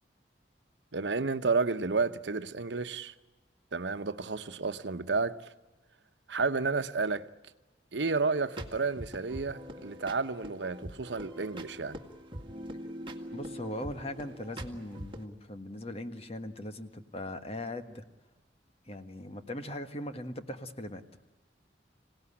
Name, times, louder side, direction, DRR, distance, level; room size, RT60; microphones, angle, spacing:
voice 1, 0.9-3.1 3.7-5.4 6.3-7.3 7.9-12.0, right 4 dB, 85° right, 1.0 m, -31 dB
sound 1, 8.2-15.2, equal, 30° right, 2.0 m, -44 dB
voice 2, 13.3-18.1 18.9-21.0, left 1 dB, 35° left, 1.6 m, -39 dB
26.5 x 18.0 x 9.9 m
head